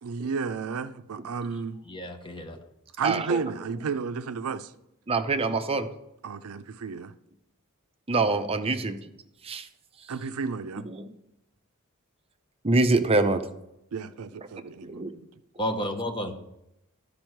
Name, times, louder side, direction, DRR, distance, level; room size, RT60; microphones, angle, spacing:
voice 1, 0.0-1.8 3.0-4.7 6.2-7.1 10.1-10.9 13.9-14.8, right 5 dB, 75° right, 0.5 m, -32 dB
voice 2, 1.9-2.6 15.6-16.3, equal, 20° left, 1.0 m, -31 dB
voice 3, 3.0-3.4 5.1-5.9 8.1-9.0 9.4-9.7 10.9-11.0 12.6-13.4, right 3 dB, 25° right, 0.6 m, -24 dB
12.5 x 5.4 x 4.5 m
head